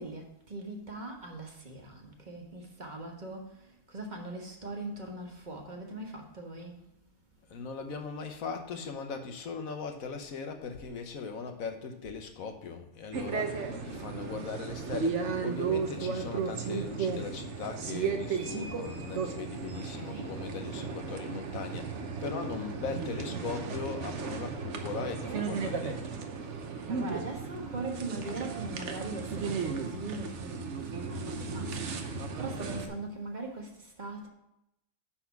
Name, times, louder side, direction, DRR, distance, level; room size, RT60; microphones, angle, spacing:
voice 1, 0.0-6.9 19.7-20.3 26.9-34.3, right 2 dB, 35° right, 1.3 m, -41 dB
voice 2, 7.5-26.2, left 5 dB, 70° left, 1.4 m, -39 dB
sound 1, 13.1-32.9, right 5 dB, 55° right, 1.1 m, -35 dB
10.0 x 4.3 x 5.8 m
omnidirectional pair, 1.5 m